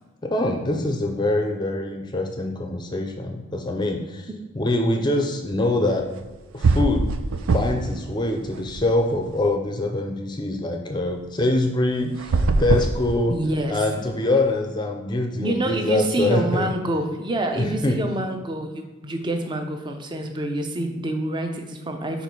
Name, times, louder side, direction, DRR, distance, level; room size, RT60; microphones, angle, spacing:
voice 1, 0.2-4.3 4.5-6.1 6.5-7.1 7.5-13.3 13.7-16.7 17.6-18.0, left 2 dB, 20° left, 4 dB, 0.5 m, -24 dB
sound 1, 6.2-6.3 6.6-8.0 8.3-9.4 12.1-13.7, right 3 dB, 85° right, 0.4 m, -22 dB
voice 2, 13.3-13.8 15.4-22.2, right 1 dB, 25° right, 4 dB, 0.5 m, -27 dB
4.6 x 4.2 x 5.3 m, 1.2 s
head